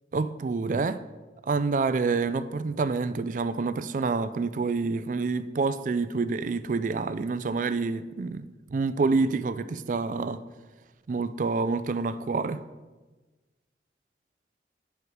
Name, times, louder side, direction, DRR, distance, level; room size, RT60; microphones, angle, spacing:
voice 1, 0.1-1.0 1.4-10.4 11.1-12.6, right 4 dB, 45° right, 0.3 m, -27 dB
9.6 x 4.7 x 4.8 m
head